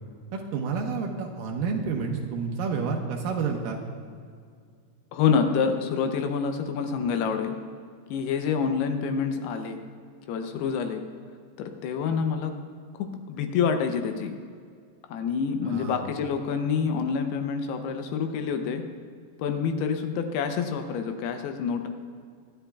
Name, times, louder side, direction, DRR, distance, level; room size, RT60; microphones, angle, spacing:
voice 1, 0.3-3.8 15.6-16.0, right 5 dB, 80° right, 1 dB, 2.0 m, -29 dB
voice 2, 5.1-7.6 8.1-9.8 10.3-11.0 11.6-12.5 13.0-14.4 15.1-18.8 19.4-21.9, left 6 dB, 80° left, 6 dB, 2.5 m, -27 dB
25.0 x 10.0 x 2.3 m, 2.1 s
omnidirectional pair, 5.1 m